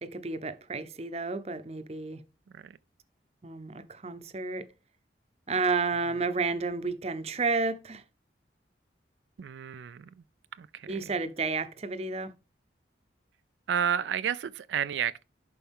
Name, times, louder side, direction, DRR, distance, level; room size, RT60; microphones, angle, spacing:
voice 1, 0.0-2.2 3.4-4.7 5.5-8.0 10.9-12.3, right 4 dB, 35° right, 0.7 m, -31 dB
voice 2, 9.4-10.1 10.6-11.0 13.7-15.2, right 8 dB, 75° right, 0.3 m, -31 dB
11.0 x 4.5 x 3.6 m
head